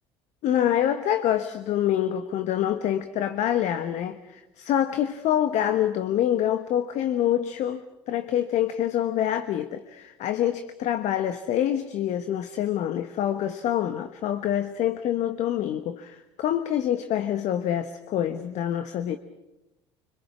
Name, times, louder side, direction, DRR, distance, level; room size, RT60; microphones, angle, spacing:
voice 1, 0.4-19.2, left 11 dB, 60° left, 9 dB, 1.3 m, -26 dB
25.5 x 25.5 x 6.1 m, 0.94 s
hypercardioid pair, 70°, 13 cm